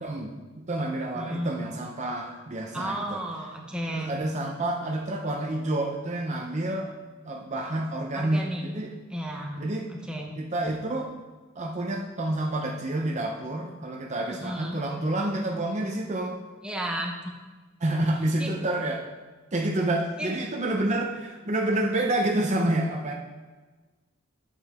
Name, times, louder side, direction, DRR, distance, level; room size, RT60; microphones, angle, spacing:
voice 1, 0.0-3.2 3.9-6.9 7.2-8.9 9.6-9.9 10.4-11.1 11.6-16.4 17.8-19.0 19.5-23.1, right 1 dB, 35° right, 1 dB, 0.8 m, -28 dB
voice 2, 1.1-1.6 2.7-4.2 8.1-8.6 9.1-9.6 9.9-10.3 14.3-14.8 16.6-17.2 18.3-18.5 20.2-20.3, right 1 dB, 5° right, 0 dB, 1.1 m, -33 dB
9.4 x 8.6 x 3.6 m, 1.3 s
head